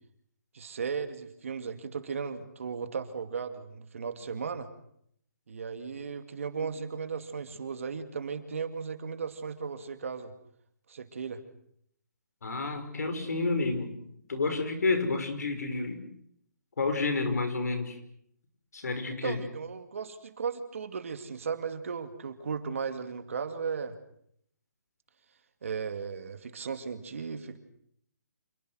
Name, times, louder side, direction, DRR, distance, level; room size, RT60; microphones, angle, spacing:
voice 1, 0.5-4.7 5.5-10.3 10.9-11.4 19.2-24.0 25.6-27.6, right 6 dB, 50° right, 8 dB, 2.5 m, -36 dB
voice 2, 12.4-13.9 14.3-16.1 16.8-18.0 18.7-19.4, left 3 dB, 65° left, 8 dB, 5.6 m, -30 dB
27.5 x 21.5 x 6.4 m, 0.69 s
hypercardioid pair, 175°, 9 cm